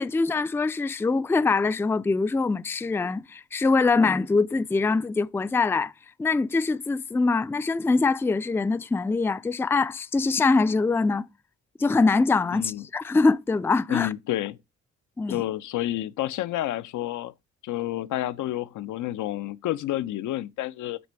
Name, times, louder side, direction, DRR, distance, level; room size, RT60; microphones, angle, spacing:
voice 1, 0.0-5.9 6.2-11.3 11.8-14.1 15.2-15.4, left 3 dB, 10° left, 0.4 m, -23 dB
voice 2, 12.5-12.8 13.9-14.6 15.3-17.3 17.6-21.0, left 14 dB, 80° left, 0.7 m, -29 dB
7.9 x 4.3 x 4.6 m
cardioid pair, 90°, 30 cm